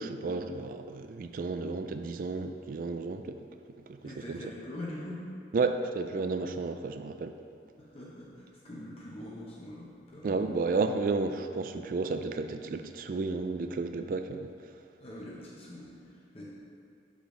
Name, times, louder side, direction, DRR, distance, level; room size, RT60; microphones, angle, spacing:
voice 1, 0.0-3.4 3.9-4.0 4.3-4.4 5.5-7.4 10.2-14.5, right 3 dB, 50° right, 8 dB, 0.3 m, -32 dB
voice 2, 4.0-5.3 7.8-10.5 15.0-16.5, left 1 dB, 35° left, -6 dB, 0.8 m, -43 dB
6.8 x 5.0 x 3.8 m, 2.5 s
head